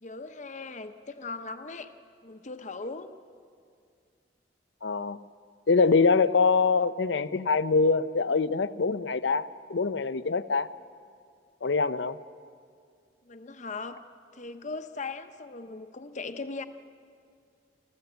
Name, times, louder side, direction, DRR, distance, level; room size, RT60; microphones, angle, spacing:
voice 1, 0.0-1.9 2.2-3.1 13.2-14.0 14.3-16.6, left 3 dB, 45° left, 8 dB, 0.9 m, -39 dB
voice 2, 4.8-5.2 5.7-10.7 11.6-12.2, left 4 dB, 85° left, 14 dB, 0.7 m, -24 dB
29.0 x 14.0 x 8.1 m, 2.3 s
head